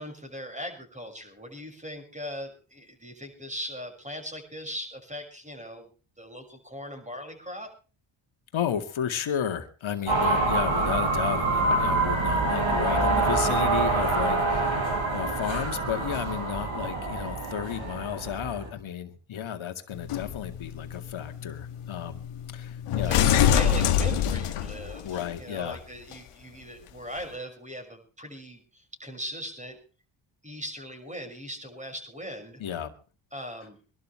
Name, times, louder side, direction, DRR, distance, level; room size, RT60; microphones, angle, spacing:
voice 1, 0.0-5.9 6.2-7.7 22.9-29.8 30.4-32.6 33.3-33.8, equal, 15° right, 4 dB, 6.3 m, -39 dB
voice 2, 8.5-14.9 15.1-22.2 22.5-23.5 25.0-25.8 32.6-32.9, left 9 dB, 70° left, 6 dB, 2.2 m, -33 dB
sound 1, 10.1-18.7, right 3 dB, 65° right, 5.8 m, -26 dB
sound 2, 19.9-25.3 26.1-26.2, left 9 dB, 85° left, 1.3 m, -26 dB
24.5 x 12.0 x 3.4 m, 0.35 s
cardioid pair, 80°, 50 cm